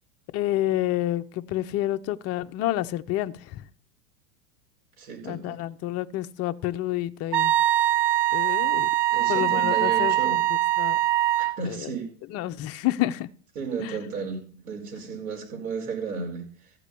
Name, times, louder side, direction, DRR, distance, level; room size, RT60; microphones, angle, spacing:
voice 1, 0.3-3.3 5.2-7.5 8.3-8.9 9.3-10.4 10.8-11.0 11.7-11.9 12.3-13.3 13.8-13.9, left 14 dB, 35° left, 0.7 m, -28 dB
voice 2, 5.0-5.6 9.1-10.4 11.4-12.1 13.5-16.5, right 5 dB, 75° right, 5.0 m, -33 dB
Wind instrument woodwind instrument, 7.3-11.6, right 13 dB, 45° right, 0.6 m, -22 dB
14.0 x 5.0 x 8.4 m
supercardioid pair, 125°, 43 cm